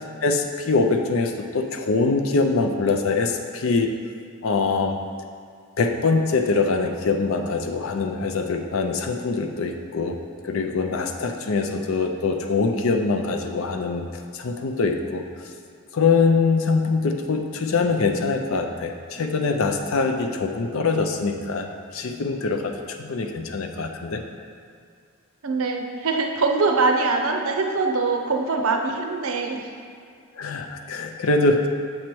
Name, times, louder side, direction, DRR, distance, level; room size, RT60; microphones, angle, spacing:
voice 1, 0.2-3.9 4.4-5.0 5.8-10.2 10.4-14.1 14.3-15.2 15.9-24.2 30.4-31.7, left 4 dB, 65° left, 4 dB, 0.5 m, -23 dB
voice 2, 25.4-29.8, right 3 dB, 65° right, 3 dB, 0.6 m, -23 dB
7.2 x 3.2 x 4.5 m, 2.3 s
head